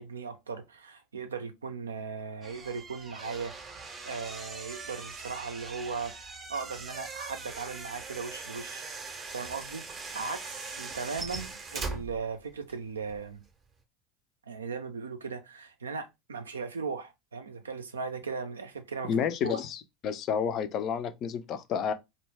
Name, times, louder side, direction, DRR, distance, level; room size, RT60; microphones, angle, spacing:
voice 1, 0.0-8.9 9.3-13.4 14.5-19.2 19.4-19.6, right 5 dB, 85° right, 0.4 m, -38 dB
sound 1, 2.4-12.7 13.0-13.4, right 4 dB, 30° right, 0.6 m, -41 dB
voice 2, 19.0-21.9, left 7 dB, 45° left, 0.4 m, -30 dB
2.2 x 2.0 x 3.2 m
hypercardioid pair, 75°, 0 cm